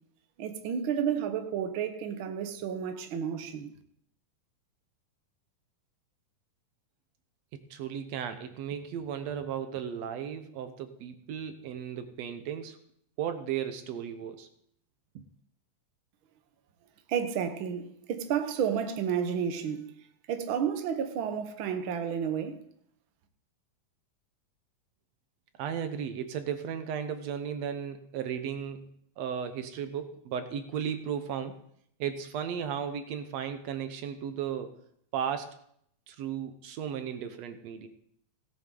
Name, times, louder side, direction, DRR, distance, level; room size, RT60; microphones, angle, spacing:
voice 1, 0.4-3.7 17.1-19.9 20.3-22.6, right 8 dB, 90° right, 1.1 m, -31 dB
voice 2, 7.5-12.8 13.2-14.5 15.1-15.2 25.6-28.9 29.2-31.6 32.0-34.7 35.1-35.6 36.1-37.9, right 8 dB, 70° right, 1.7 m, -35 dB
17.0 x 9.5 x 3.8 m
omnidirectional pair, 3.8 m